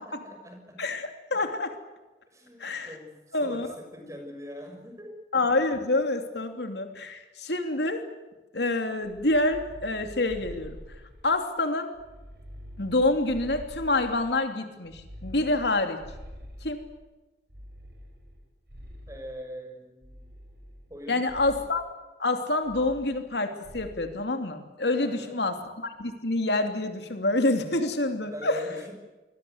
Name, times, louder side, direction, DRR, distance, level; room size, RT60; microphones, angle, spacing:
voice 1, 0.0-0.8 2.3-5.1 19.1-20.2 20.9-21.2 24.9-25.4 28.2-28.9, left 1 dB, 15° right, 4 dB, 6.2 m, -41 dB
voice 2, 0.8-1.8 2.6-2.9 3.3-3.7 5.3-8.0 8.5-10.8 11.2-11.9 12.8-16.0 16.6-16.8 21.1-21.8 22.2-28.6, left 2 dB, 70° left, 6 dB, 3.1 m, -27 dB
sound 1, 9.0-11.5 11.9-14.4 14.8-17.0 17.5-19.4 20.0-21.0 21.3-21.8 22.6-23.4 23.6-24.1, equal, 60° right, 6.5 m, -46 dB
28.0 x 21.5 x 8.1 m, 1.1 s
head